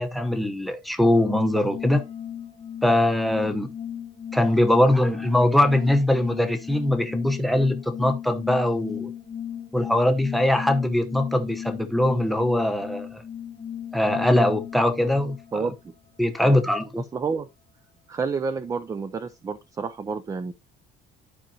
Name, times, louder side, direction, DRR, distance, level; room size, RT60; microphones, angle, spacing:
voice 1, 0.0-2.0 2.8-3.7 4.3-9.1 9.7-13.2 13.9-15.7 16.2-17.0, left 1 dB, ahead, 0.8 m, -22 dB
sound 1, 1.2-15.6, left 9 dB, 30° left, 1.0 m, -36 dB
voice 2, 15.5-15.9 16.4-16.6 17.0-17.5 18.1-20.5, right 5 dB, 15° right, 0.4 m, -30 dB
12.0 x 4.9 x 2.8 m
cardioid pair, 165°, 21 cm